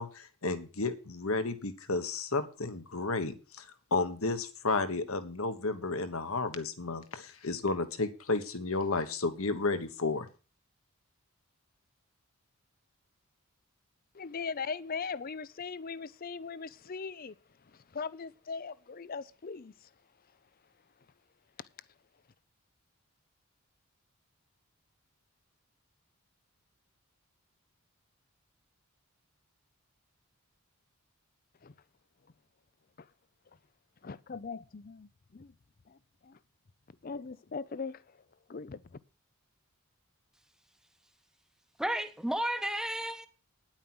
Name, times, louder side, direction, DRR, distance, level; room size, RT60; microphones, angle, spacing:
voice 1, 0.0-10.3, left 3 dB, 70° left, 1.3 m, -32 dB
voice 2, 14.1-17.3 17.6-19.9 21.6-21.7 31.6-31.7 33.0-33.1 34.0-35.5 35.9-36.4 37.0-38.2 38.5-39.0, left 5 dB, 40° left, 0.5 m, -40 dB
voice 3, 41.8-43.3, right 1 dB, 5° right, 0.9 m, -32 dB
10.0 x 8.9 x 6.0 m
head